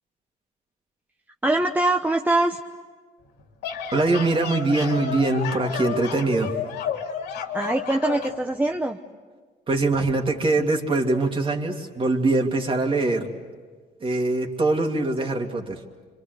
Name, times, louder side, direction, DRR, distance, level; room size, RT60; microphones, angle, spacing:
voice 1, 1.4-2.6 7.5-9.0, right 2 dB, 10° right, 3 dB, 0.9 m, -23 dB
sound 1, 3.4-8.4, left 7 dB, 80° left, 2.7 m, -31 dB
voice 2, 3.9-6.6 9.7-13.3 14.0-15.8, right 2 dB, 30° right, 3 dB, 2.7 m, -23 dB
27.0 x 25.0 x 8.0 m, 1.5 s
cardioid pair, 110°, 17 cm